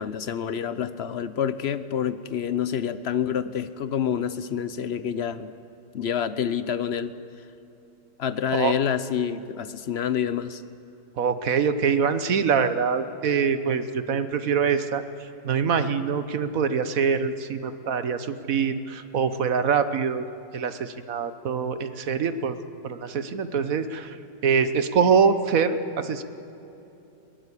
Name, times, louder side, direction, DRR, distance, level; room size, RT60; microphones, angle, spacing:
voice 1, 0.0-5.5 5.9-7.1 8.2-10.6, left 8 dB, 55° left, 13 dB, 0.7 m, -27 dB
voice 2, 11.2-15.0 15.4-20.2 20.5-22.6 22.8-24.2 24.4-26.2, right 6 dB, 55° right, 11 dB, 1.3 m, -24 dB
22.0 x 19.0 x 8.4 m, 2.9 s
omnidirectional pair, 1.8 m